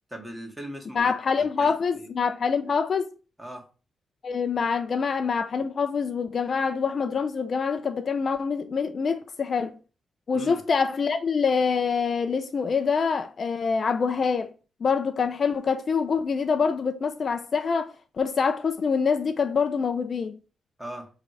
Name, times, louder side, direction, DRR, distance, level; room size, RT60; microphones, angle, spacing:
voice 1, 0.1-2.1 3.4-3.7 10.3-10.6 20.8-21.1, equal, 5° right, 2.0 m, -39 dB
voice 2, 1.0-3.1 4.2-9.7 10.3-14.5 14.8-20.3, left 5 dB, 50° left, 0.5 m, -25 dB
7.4 x 3.4 x 4.7 m
cardioid pair, 110°, 0 cm